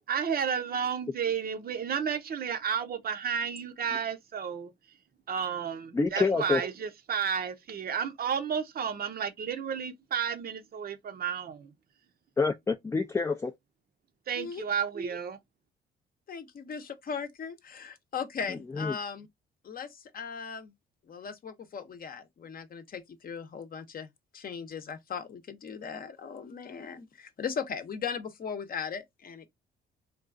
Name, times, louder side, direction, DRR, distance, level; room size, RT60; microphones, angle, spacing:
voice 1, 0.1-4.7 5.3-11.7 14.3-15.4, right 7 dB, 50° right, 0.6 m, -32 dB
voice 2, 5.9-6.6 12.4-13.5 18.5-19.0, left 4 dB, 15° left, 0.3 m, -27 dB
voice 3, 16.3-19.3 19.6-20.7 21.1-24.1 24.3-29.5, left 6 dB, 45° left, 0.7 m, -38 dB
3.8 x 2.3 x 2.5 m
cardioid pair, 90°, 20 cm